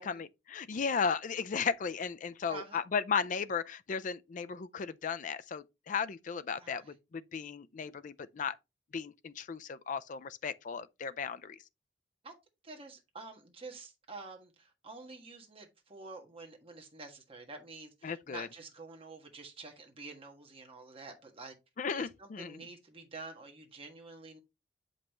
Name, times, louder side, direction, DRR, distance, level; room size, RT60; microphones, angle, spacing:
voice 1, 0.0-8.6 8.9-11.6 18.0-18.5 21.8-22.6, left 6 dB, 45° left, 0.4 m, -35 dB
voice 2, 2.5-2.8 6.6-6.9 12.2-12.3 12.6-21.5 21.9-24.4, right 3 dB, 30° right, 1.5 m, -48 dB
7.3 x 5.4 x 3.0 m
head